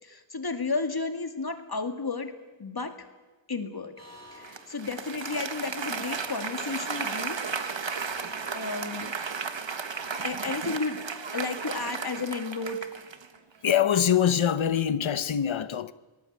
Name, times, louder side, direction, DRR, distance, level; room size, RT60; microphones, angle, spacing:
voice 1, 0.0-2.3 2.6-2.9 3.5-3.9 4.3-7.4 8.5-9.1 10.2-11.0 11.3-12.8, left 4 dB, 50° left, 2.4 m, -32 dB
sound 1, 4.0-10.2, equal, 35° right, 5.7 m, -51 dB
Applause, 4.4-13.4, right 5 dB, 70° right, 1.5 m, -34 dB
voice 2, 13.6-15.9, left 9 dB, 85° left, 0.9 m, -24 dB
25.5 x 19.0 x 8.2 m
wide cardioid pair, 65°, 46 cm